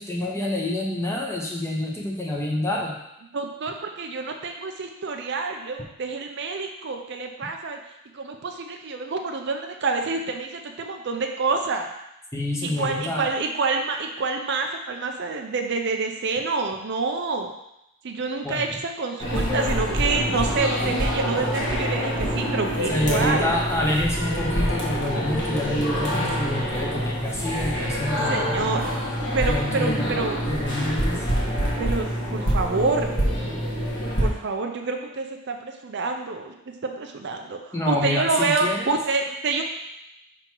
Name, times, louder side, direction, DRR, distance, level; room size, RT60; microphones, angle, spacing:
voice 1, 0.0-3.0 12.3-13.3 18.4-18.7 22.9-28.7 29.5-30.1 30.5-31.2 37.7-38.9, left 1 dB, 10° left, -2 dB, 0.8 m, -27 dB
voice 2, 3.3-7.8 8.1-11.9 12.6-17.5 18.0-23.5 28.3-28.8 29.3-30.4 31.8-33.1 34.2-36.5 36.8-37.6 37.9-39.6, right 4 dB, 50° right, 3 dB, 0.5 m, -27 dB
sound 1, 19.2-34.3, equal, 50° left, 1.6 m, -26 dB
5.8 x 3.8 x 4.5 m, 0.85 s
head